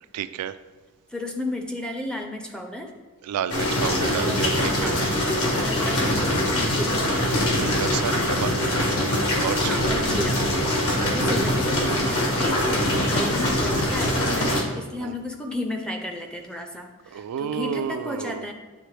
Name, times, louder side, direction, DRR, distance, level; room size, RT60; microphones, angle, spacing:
voice 1, 0.1-0.6 3.2-5.0 7.6-8.5 9.4-9.9 14.5-14.7 15.0-15.1 17.1-18.5, right 8 dB, 90° right, 14 dB, 0.3 m, -30 dB
voice 2, 1.1-2.9 4.2-4.5 4.8-5.0 5.6-7.0 9.6-10.4 10.9-18.5, left 1 dB, 5° left, 3 dB, 0.4 m, -33 dB
sound 1, 3.5-14.6, left 1 dB, 70° left, 1.3 m, -23 dB
9.1 x 3.3 x 3.2 m, 1.3 s
head